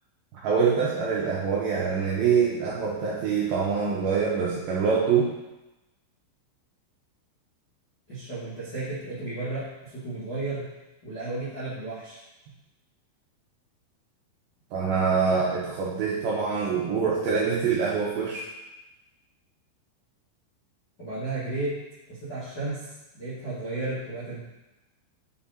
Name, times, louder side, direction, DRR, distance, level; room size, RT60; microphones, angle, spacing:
voice 1, 0.3-5.3 14.7-18.4, right 6 dB, 85° right, -5 dB, 2.2 m, -25 dB
voice 2, 8.1-10.6 11.0-12.2 21.0-21.8 22.1-22.9 23.1-24.4, right 2 dB, 85° left, -13 dB, 0.9 m, -33 dB
8.4 x 3.7 x 4.2 m, 1.0 s
omnidirectional pair, 5.4 m